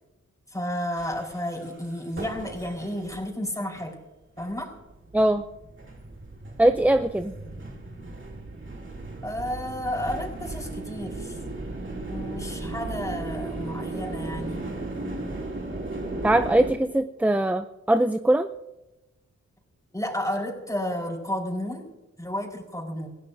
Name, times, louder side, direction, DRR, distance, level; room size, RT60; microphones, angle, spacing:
voice 1, 0.5-4.0 4.4-4.7 9.2-11.4 12.1-14.6 19.9-21.8 22.2-23.1, left 1 dB, 10° left, 0 dB, 4.7 m, -32 dB
sound 1, 1.0-3.3 3.8-3.9 4.4-16.7, right 2 dB, 40° right, 2.8 m, -36 dB
voice 2, 6.6-7.3 16.2-18.5, right 1 dB, 5° right, 10 dB, 0.5 m, -21 dB
28.0 x 16.0 x 2.7 m, 1.0 s
wide cardioid pair, 80°, 29 cm